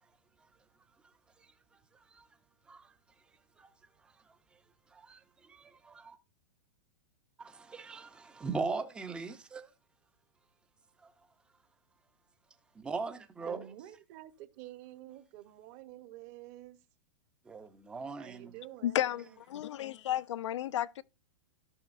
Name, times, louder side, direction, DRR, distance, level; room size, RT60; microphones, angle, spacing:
voice 1, 4.9-6.2 7.4-9.7 11.0-11.1 12.8-13.6 17.5-18.5, right 4 dB, 5° right, 0.5 m, -40 dB
voice 2, 13.4-16.8 18.2-19.4, right 14 dB, 30° right, 0.8 m, -49 dB
voice 3, 18.8-21.0, left 12 dB, 85° left, 0.5 m, -33 dB
15.5 x 6.0 x 2.5 m
supercardioid pair, 170°, 15 cm